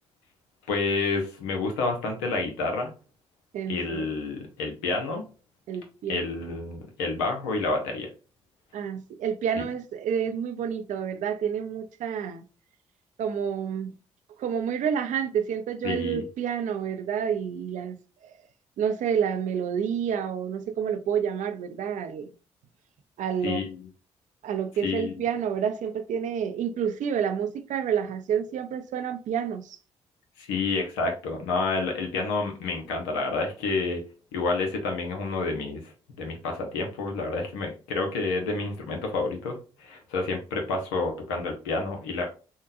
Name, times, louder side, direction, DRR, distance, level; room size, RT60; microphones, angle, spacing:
voice 1, 0.7-2.9 3.7-5.2 6.1-8.1 9.6-9.7 15.8-16.2 23.4-23.9 24.8-25.1 30.4-34.0 34.3-35.9 36.2-42.2, left 3 dB, 90° left, 0.7 m, -29 dB
voice 2, 3.5-4.1 5.7-6.3 8.7-12.4 13.2-13.9 14.4-18.0 18.8-22.3 23.2-23.6 24.4-29.8, right 8 dB, 65° right, 0.5 m, -29 dB
3.6 x 2.2 x 2.6 m
hypercardioid pair, 45°, 14 cm